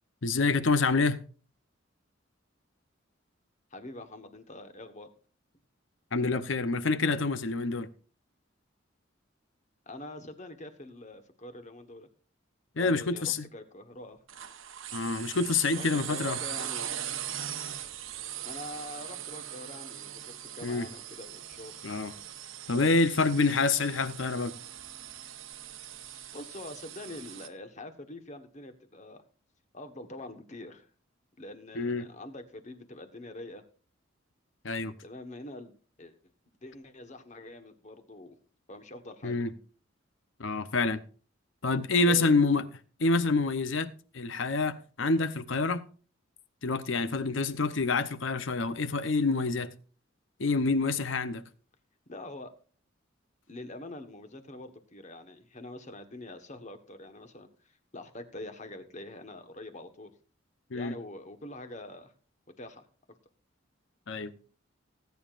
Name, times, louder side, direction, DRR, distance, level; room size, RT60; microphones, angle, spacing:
voice 1, 0.2-1.2 6.1-7.9 12.8-13.5 14.9-16.4 20.6-20.9 21.8-22.1 22.7-24.6 31.7-32.1 34.6-34.9 39.2-39.5 40.4-41.0 41.6-42.6 43.0-45.8 46.6-49.7 50.4-51.4 60.7-61.0 64.1-64.3, left 3 dB, 70° left, 0.8 m, -27 dB
voice 2, 3.7-5.1 9.9-12.1 12.8-14.2 15.8-16.9 18.4-21.8 26.3-29.2 29.7-30.9 31.4-33.6 35.0-35.7 36.0-36.1 36.6-38.4 38.7-39.5 42.0-42.3 52.1-52.5 53.5-57.5 57.9-60.1 60.7-62.1 62.6-62.8, left 1 dB, 40° left, 1.3 m, -44 dB
sound 1, 14.3-27.5, right 10 dB, 90° right, 1.0 m, -40 dB
19.0 x 9.3 x 2.5 m
head